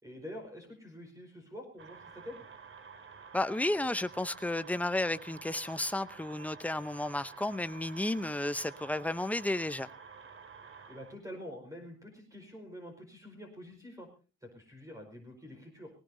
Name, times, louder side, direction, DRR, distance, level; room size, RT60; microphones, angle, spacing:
voice 1, 0.0-2.4 10.9-14.1 14.4-15.9, equal, 10° right, 5.1 m, -47 dB
sound 1, 1.8-11.1, right 6 dB, 45° right, 2.5 m, -51 dB
voice 2, 3.3-9.9, left 1 dB, 5° left, 0.8 m, -32 dB
20.0 x 18.5 x 2.7 m
cardioid pair, 90°, 30 cm